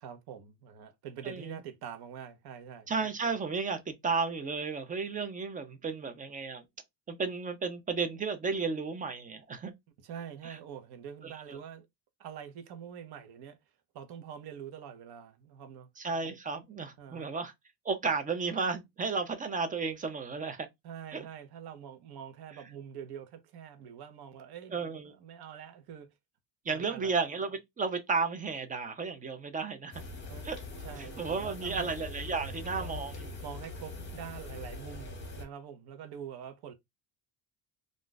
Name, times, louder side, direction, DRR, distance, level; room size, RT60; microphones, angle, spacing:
voice 1, 0.0-2.9 10.0-11.9 12.2-13.6 13.9-15.9 17.0-17.3 20.8-26.1 26.7-27.1 30.3-30.5 30.8-31.9 32.8-33.0 33.4-36.7, right 8 dB, 55° right, 0.8 m, -45 dB
voice 2, 1.2-1.5 2.9-6.6 7.1-9.7 10.4-10.6 11.2-11.6 16.0-17.5 17.9-20.7 21.1-21.2 24.7-25.1 26.7-29.9 30.4-30.6 31.2-33.3, right 4 dB, 20° right, 0.4 m, -33 dB
sound 1, 29.9-35.4, left 2 dB, 25° left, 1.0 m, -42 dB
2.5 x 2.2 x 3.7 m
cardioid pair, 135°, 47 cm